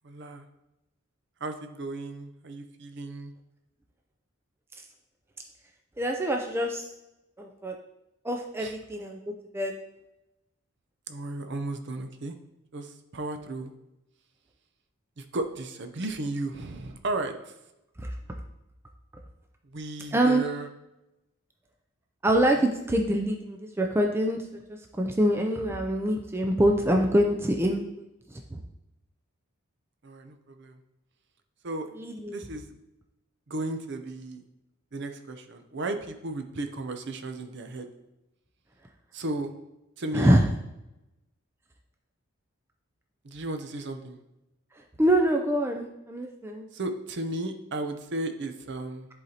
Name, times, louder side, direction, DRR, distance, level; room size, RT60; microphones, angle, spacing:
voice 1, 0.0-0.5 1.4-3.3 8.6-8.8 11.1-12.4 12.7-13.7 15.2-17.5 19.6-20.7 22.5-22.7 30.0-30.8 31.6-31.9 32.3-32.8 33.5-34.4 34.9-37.9 39.1-39.5 40.0-40.3 43.2-44.2 46.7-49.1, right 2 dB, 55° right, 7 dB, 0.6 m, -34 dB
voice 2, 6.0-6.9 7.4-7.7 8.2-9.2 9.5-9.7 18.0-18.1 20.1-20.4 22.2-28.6 32.0-32.4 40.1-40.4 45.0-46.7, right 1 dB, 10° right, 2 dB, 0.4 m, -25 dB
10.5 x 4.0 x 2.8 m, 0.92 s
head